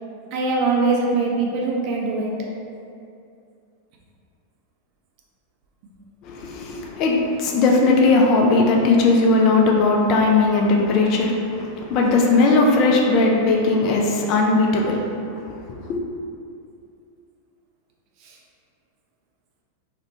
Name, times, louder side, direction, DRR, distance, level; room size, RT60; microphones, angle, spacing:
voice 1, 0.3-2.3 18.2-18.4, right 3 dB, 40° right, -2 dB, 0.4 m, -22 dB
voice 2, 6.2-16.0, left 3 dB, 40° left, 0 dB, 0.3 m, -18 dB
2.5 x 2.1 x 2.6 m, 2.5 s
figure-of-eight pair, 90°, 0 cm